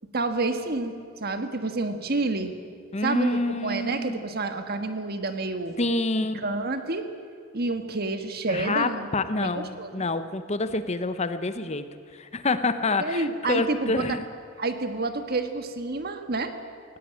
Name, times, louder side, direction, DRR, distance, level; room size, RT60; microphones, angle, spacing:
voice 1, 0.1-2.5 3.0-5.8 6.4-7.1 7.5-9.1 9.3-10.0 13.0-14.2 14.6-16.5, right 3 dB, 50° right, 7 dB, 1.5 m, -29 dB
voice 2, 2.9-4.2 5.8-6.4 8.5-14.2, left 2 dB, 35° left, 11 dB, 0.8 m, -27 dB
18.5 x 16.5 x 8.9 m, 2.2 s
head